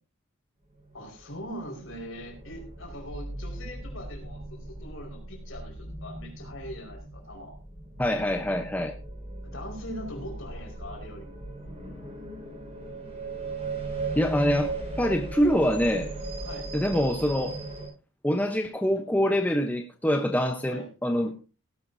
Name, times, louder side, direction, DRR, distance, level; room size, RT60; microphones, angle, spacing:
voice 1, 0.9-7.6 9.4-11.4 16.4-16.7 20.7-20.9, equal, 65° left, 2 dB, 5.0 m, -41 dB
sound 1, 1.0-17.9, right 2 dB, 30° right, 6.5 m, -38 dB
voice 2, 8.0-8.9 14.2-16.1 16.7-17.6 18.2-21.5, equal, 10° left, 4 dB, 0.9 m, -25 dB
17.5 x 12.0 x 2.7 m, 0.32 s
head